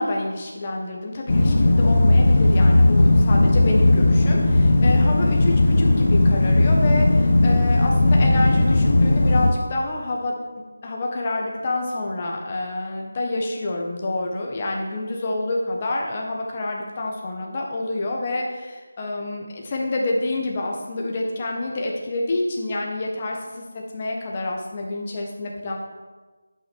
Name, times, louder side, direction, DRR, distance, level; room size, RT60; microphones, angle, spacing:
voice 1, 0.0-10.4 10.8-25.8, left 2 dB, 25° left, 0 dB, 1.4 m, -28 dB
sound 1, 1.3-9.5, left 2 dB, 45° left, 0.8 m, -17 dB
10.0 x 6.1 x 4.7 m, 1.3 s
figure-of-eight pair, 170°, 0 cm